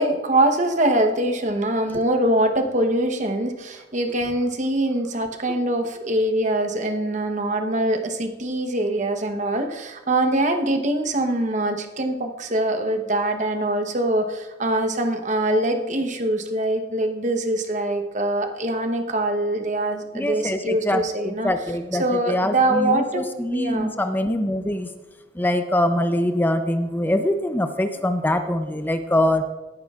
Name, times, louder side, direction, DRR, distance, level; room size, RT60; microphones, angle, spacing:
voice 1, 0.0-21.5 21.9-23.3 23.5-23.9, right 1 dB, 40° right, 5 dB, 0.9 m, -23 dB
voice 2, 20.1-24.9 25.4-29.4, left 1 dB, 10° left, 8 dB, 0.5 m, -23 dB
17.5 x 9.6 x 2.4 m, 1.2 s
head